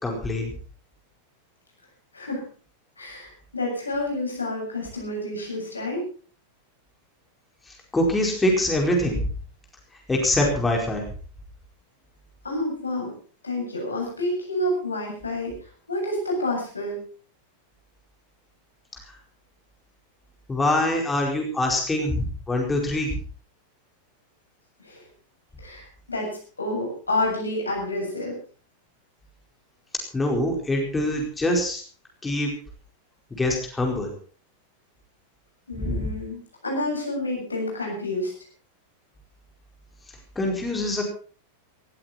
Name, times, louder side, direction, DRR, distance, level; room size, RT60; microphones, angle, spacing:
voice 1, 0.0-0.5 7.7-9.3 10.1-11.0 20.5-23.2 30.1-31.8 32.2-32.5 33.4-34.1 35.8-36.2 40.3-41.0, left 1 dB, 10° left, 1 dB, 4.7 m, -24 dB
voice 2, 2.1-2.5 3.0-6.1 12.4-13.1 13.4-15.6 15.9-17.0 24.8-25.1 25.6-28.4 35.7-38.3, left 1 dB, 80° left, 0 dB, 8.0 m, -29 dB
18.0 x 15.0 x 4.3 m, 0.40 s
figure-of-eight pair, 90°, 0 cm